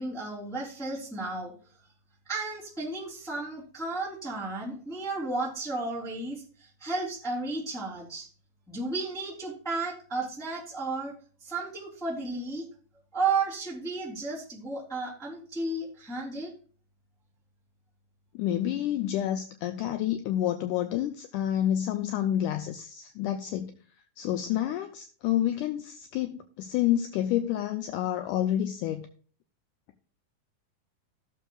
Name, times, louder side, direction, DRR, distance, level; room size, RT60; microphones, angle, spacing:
voice 1, 0.0-1.5 2.3-8.3 8.7-11.1 11.4-12.6 13.1-16.5, right 3 dB, ahead, 2.5 m, -33 dB
voice 2, 18.4-23.7 24.2-29.1, left 11 dB, 85° left, 1.8 m, -29 dB
16.5 x 6.4 x 2.3 m
omnidirectional pair, 4.1 m